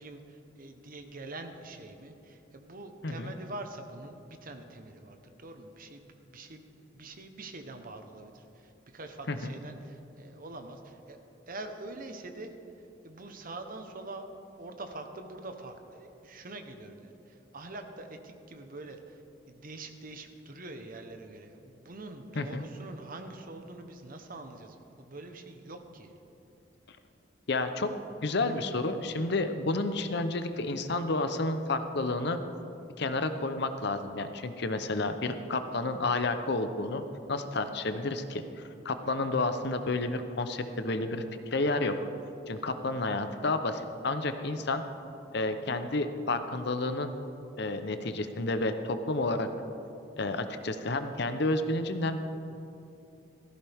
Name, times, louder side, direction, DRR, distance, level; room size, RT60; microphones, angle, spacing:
voice 1, 0.0-11.2 11.5-12.5 13.0-14.3 14.6-26.1 42.5-42.8, right 2 dB, 50° right, 6 dB, 1.1 m, -45 dB
voice 2, 27.5-27.9 28.2-32.4 33.0-37.0 37.3-41.2 41.5-42.0 42.5-44.8 45.3-47.1 47.6-49.5 50.2-52.2, left 2 dB, 60° left, 9 dB, 0.8 m, -30 dB
17.0 x 14.5 x 3.6 m, 2.9 s
head